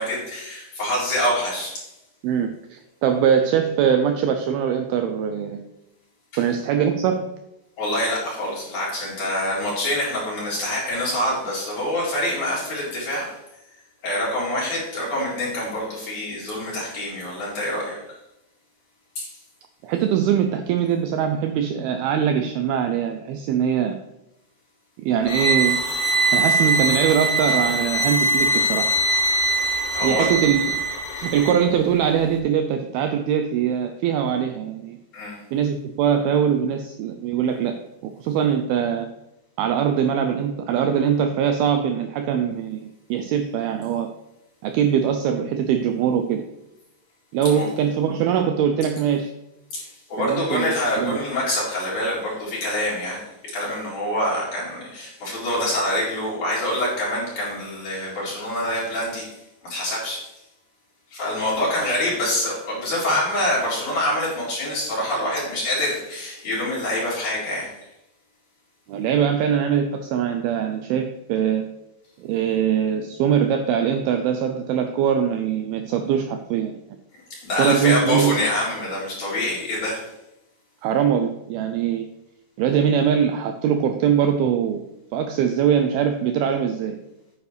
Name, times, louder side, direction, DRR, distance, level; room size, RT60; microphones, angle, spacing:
voice 1, 0.0-1.8 7.8-13.4 14.0-18.0 19.2-19.3 29.9-30.3 35.1-35.4 47.5-47.7 49.7-59.4 59.6-60.3 61.1-67.7 77.3-80.1, left 1 dB, 45° left, -7 dB, 5.2 m, -26 dB
voice 2, 2.2-5.6 6.4-7.3 19.8-24.0 25.0-25.8 26.3-28.9 30.0-30.8 31.2-35.0 35.5-37.8 38.0-39.1 39.6-44.1 44.6-46.4 47.3-49.3 50.2-51.2 68.9-71.6 72.2-76.8 77.6-78.4 80.8-82.1 82.6-84.8 85.1-87.0, right 8 dB, 80° right, 7 dB, 2.2 m, -22 dB
sound 1, 25.3-31.6, right 2 dB, 75° left, 4.0 m, -22 dB
9.8 x 9.2 x 3.3 m, 0.89 s
omnidirectional pair, 4.9 m